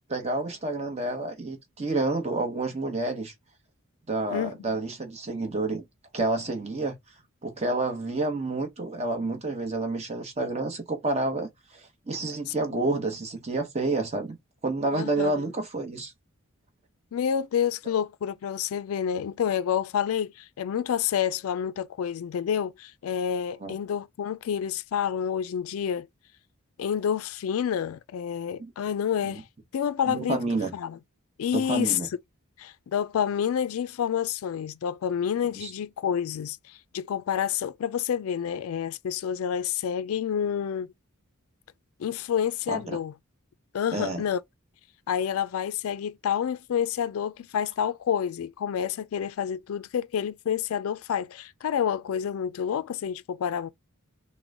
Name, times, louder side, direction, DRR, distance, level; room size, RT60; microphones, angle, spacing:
voice 1, 0.1-3.3 4.1-5.8 6.1-7.0 7.4-11.8 12.1-14.4 14.6-16.1 23.6-23.7 29.2-29.4 30.1-30.7 31.5-32.1 35.6-35.7 42.7-43.0 43.9-44.2, right 2 dB, 30° right, 1.0 m, -29 dB
voice 2, 4.3-4.7 12.5-12.6 14.9-15.5 17.1-26.1 26.8-29.4 29.7-30.4 30.7-31.0 31.4-32.0 32.6-40.9 42.0-43.1 43.7-44.4 45.1-53.7, left 8 dB, 75° left, 0.3 m, -28 dB
3.8 x 2.1 x 3.5 m
head